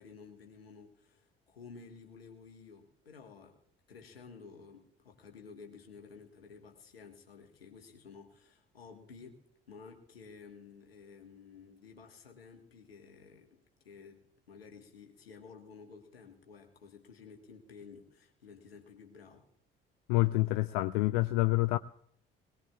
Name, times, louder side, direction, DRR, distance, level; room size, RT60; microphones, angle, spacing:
voice 1, 0.0-3.6 3.9-9.4 9.7-13.6 13.8-19.4, left 5 dB, 85° left, 3 dB, 1.5 m, -53 dB
voice 2, 20.1-21.8, left 19 dB, 65° left, 13 dB, 0.5 m, -27 dB
21.0 x 19.5 x 2.4 m, 0.69 s
figure-of-eight pair, 50°, 29 cm